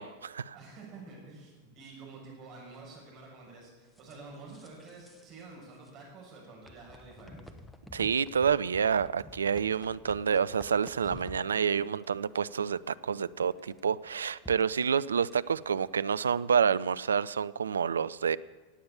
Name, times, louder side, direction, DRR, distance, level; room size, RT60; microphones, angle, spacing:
voice 1, 0.0-0.6 7.9-18.4, right 7 dB, 70° right, 16 dB, 0.3 m, -28 dB
voice 2, 0.5-7.4, right 3 dB, 35° right, -2 dB, 6.3 m, -49 dB
sound 1, 4.0-5.4 5.7-5.9 6.6-15.9, left 1 dB, 5° left, 1.1 m, -52 dB
17.0 x 8.6 x 6.9 m, 1.3 s
figure-of-eight pair, 90°, 0 cm